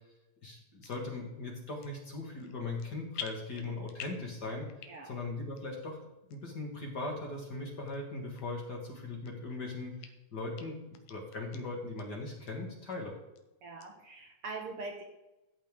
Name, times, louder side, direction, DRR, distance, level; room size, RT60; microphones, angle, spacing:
voice 1, 0.4-4.7 5.0-6.0 6.3-13.1, left 2 dB, 40° left, 0 dB, 2.0 m, -39 dB
sound 1, 0.8-1.0 1.6-2.1 2.4-2.9 3.1-4.3 4.7-5.2 5.6-5.7 6.3-6.4 7.1-7.2 7.9-8.0 8.4-8.5 8.9-9.6 10.0-10.1 10.6-10.7 10.9-11.6 12.0-12.1 12.4-12.5 12.9-13.4 13.8-13.9, left 8 dB, 85° left, 2.4 m, -46 dB
voice 2, 13.6-15.0, right 3 dB, 60° right, 2 dB, 1.7 m, -42 dB
14.0 x 8.5 x 3.7 m, 1.0 s
omnidirectional pair, 3.3 m